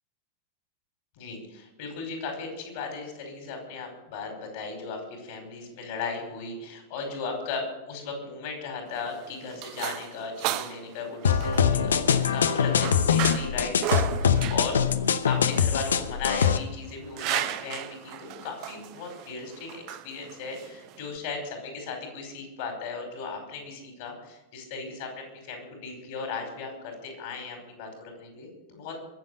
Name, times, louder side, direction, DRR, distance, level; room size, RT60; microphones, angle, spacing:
voice 1, 1.2-14.8 15.3-29.0, left 4 dB, 50° left, 4 dB, 5.1 m, -37 dB
sound 1, 8.9-21.2, right 13 dB, 40° right, 1.0 m, -36 dB
sound 2, 11.2-16.6, left 7 dB, 65° left, 0.9 m, -23 dB
22.0 x 7.6 x 8.1 m, 0.95 s
figure-of-eight pair, 90°, 0 cm